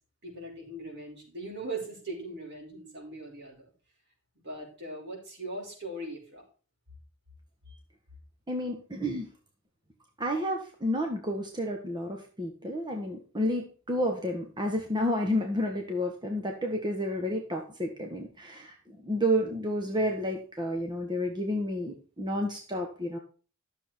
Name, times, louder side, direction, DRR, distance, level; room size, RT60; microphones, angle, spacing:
voice 1, 0.2-3.7 4.4-6.4 7.7-7.8, right 2 dB, 60° right, -1 dB, 5.5 m, -40 dB
voice 2, 8.5-9.2 10.2-18.7 19.0-23.2, equal, 20° right, 2 dB, 1.5 m, -30 dB
12.5 x 7.1 x 4.5 m, 0.37 s
head